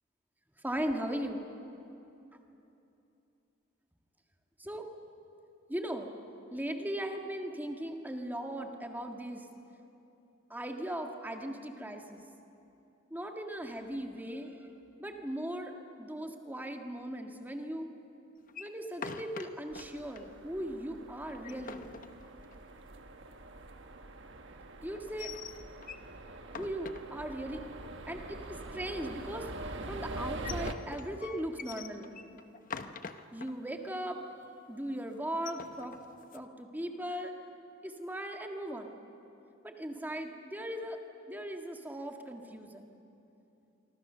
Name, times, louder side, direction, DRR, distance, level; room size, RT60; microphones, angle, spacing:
voice 1, 0.6-1.5 4.6-4.9 5.7-6.1 6.5-9.4 10.5-12.2 13.1-14.7 15.0-15.7 16.0-17.9 18.6-21.9 24.8-25.3 26.6-27.6 28.1-29.5 29.9-32.1 33.3-34.2 34.7-36.0 36.3-37.3 37.8-39.0 39.6-41.0 41.3-42.9, right 1 dB, 10° right, 3 dB, 1.8 m, -38 dB
sound 1, 18.5-19.8 20.2-20.3 20.6-20.7 21.2-22.7 24.9-26.1 26.4-27.5 30.1-33.5 33.9-34.0 34.3-34.7 35.3-36.5, left 6 dB, 40° left, 0.9 m, -44 dB
sound 2, 19.7-30.7, right 2 dB, 60° right, 1.4 m, -44 dB
26.0 x 25.5 x 6.9 m, 2.9 s
head